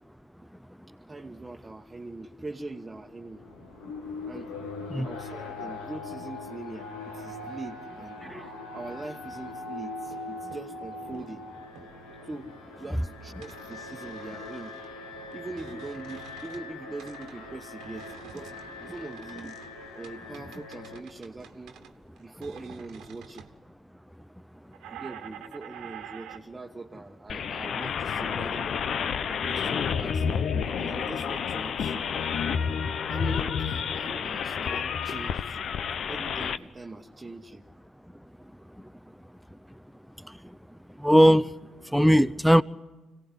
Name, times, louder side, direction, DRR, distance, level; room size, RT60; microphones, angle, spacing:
voice 1, 1.1-3.4 4.3-4.5 5.0-8.2 8.7-11.5 12.2-12.5 12.8-14.8 15.3-18.5 18.9-19.6 19.9-21.8 22.2-23.5 24.9-28.9 29.3-30.4 30.7-32.6 33.1-35.7 36.1-37.6, right 2 dB, 25° right, 1.3 m, -42 dB
Alarm, 3.1-21.0, left 3 dB, 85° left, 2.2 m, -41 dB
voice 2, 8.2-8.5 38.8-38.9 40.2-40.4 41.0-41.5 41.9-42.6, equal, ahead, 0.8 m, -20 dB
sound 1, 8.7-9.7 10.0-10.3 10.5-11.4 11.7-12.2 13.4-14.9 15.3-16.7 17.0-23.5 24.7-26.4, right 9 dB, 70° right, 1.5 m, -48 dB
sound 2, 27.3-36.6, left 7 dB, 60° left, 0.8 m, -29 dB
26.0 x 17.5 x 9.8 m
hypercardioid pair, 45°, 0 cm